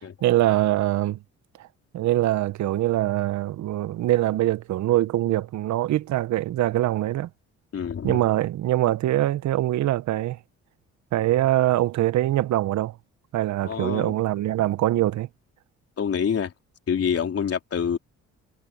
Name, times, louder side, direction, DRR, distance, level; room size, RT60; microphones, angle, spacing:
voice 1, 0.2-1.2 1.6-1.7 1.9-7.3 8.0-10.4 11.1-13.0 13.3-15.3, right 14 dB, 65° right, 0.7 m, -23 dB
voice 2, 7.7-8.2 13.6-14.1 16.0-16.5 16.9-18.0, left 7 dB, 50° left, 3.8 m, -26 dB
cardioid pair, 90°, 30 cm